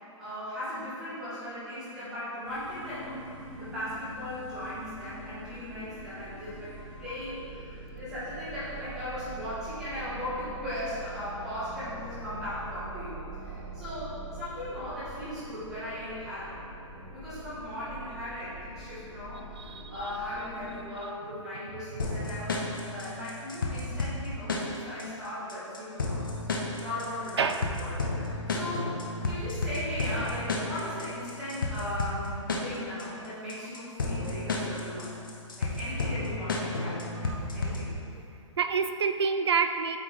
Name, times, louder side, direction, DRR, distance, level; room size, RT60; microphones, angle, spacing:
voice 1, 0.2-3.3 3.6-6.7 7.0-16.5 17.1-22.6 22.9-26.2 26.8-35.1 35.6-37.9, left 1 dB, 5° right, -13 dB, 0.8 m, -38 dB
sound 1, 2.4-20.8, right 2 dB, 20° left, 1.2 m, -44 dB
voice 2, 19.6-19.9 27.4-27.7 37.2-37.8 38.6-40.0, right 5 dB, 55° right, 8 dB, 0.4 m, -28 dB
sound 2, 22.0-38.0, left 3 dB, 40° left, 0.6 m, -32 dB
8.0 x 3.2 x 3.9 m, 2.7 s
hypercardioid pair, 180°, 17 cm